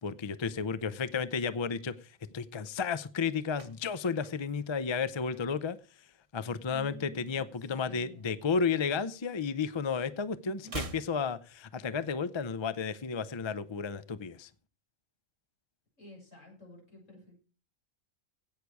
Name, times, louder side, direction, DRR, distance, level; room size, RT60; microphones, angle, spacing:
voice 1, 0.0-2.0 2.3-5.8 6.3-14.5, left 5 dB, 40° left, 15 dB, 0.4 m, -32 dB
sound 1, 3.5-5.8 6.1-6.4 6.7-8.2 8.4-9.8 10.1-12.2 12.4-12.5, right 4 dB, 30° right, 0.8 m, -47 dB
voice 2, 6.7-8.3 10.4-10.8 16.0-17.4, left 1 dB, 60° left, 0 dB, 6.9 m, -51 dB
16.5 x 6.7 x 4.8 m, 0.35 s
omnidirectional pair, 1.4 m